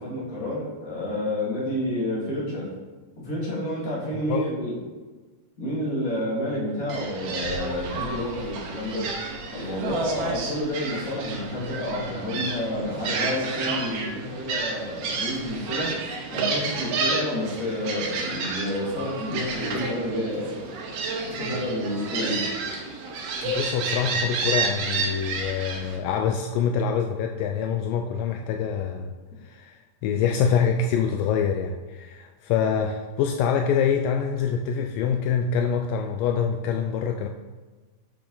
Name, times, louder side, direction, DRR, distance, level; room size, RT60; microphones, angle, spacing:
voice 1, 0.0-2.7 3.2-4.8 5.6-9.1 9.5-20.6 21.2-22.4, left 1 dB, 25° left, -5 dB, 2.1 m, -29 dB
Gull seagull, 6.9-26.0, right 4 dB, 80° right, 3.1 m, -30 dB
voice 2, 23.4-29.1 29.5-29.7 30.0-37.3, left 7 dB, 85° left, 4 dB, 1.9 m, -25 dB
7.9 x 6.9 x 3.9 m, 1.3 s
omnidirectional pair, 4.4 m